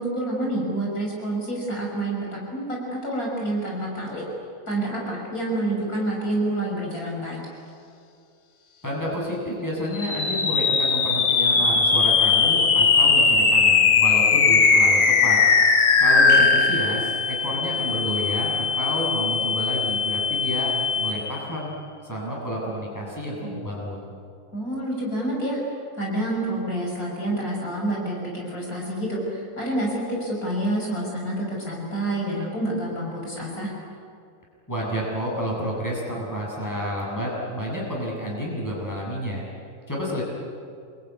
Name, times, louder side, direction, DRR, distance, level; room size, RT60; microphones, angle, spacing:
voice 1, 0.0-4.2 4.7-7.4 24.5-25.6 26.0-33.7, right 1 dB, 60° left, -2 dB, 6.3 m, -28 dB
voice 2, 8.8-15.4 16.0-21.7 22.0-24.1 34.7-39.4 39.9-40.2, equal, 10° left, -4 dB, 7.4 m, -30 dB
sound 1, 9.9-21.5, left 5 dB, 85° left, 2.2 m, -20 dB
27.5 x 22.0 x 9.7 m, 2.4 s
omnidirectional pair, 1.7 m